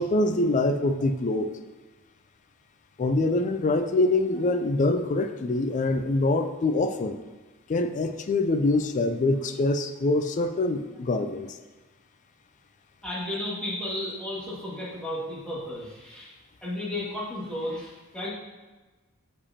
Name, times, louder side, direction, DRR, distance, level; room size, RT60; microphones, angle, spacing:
voice 1, 0.0-1.5 3.0-7.2 7.7-11.6, left 2 dB, 35° left, 9 dB, 0.4 m, -24 dB
voice 2, 13.0-16.3 16.6-18.3, left 1 dB, 5° left, -9 dB, 1.8 m, -33 dB
6.8 x 4.9 x 2.8 m, 1.3 s
head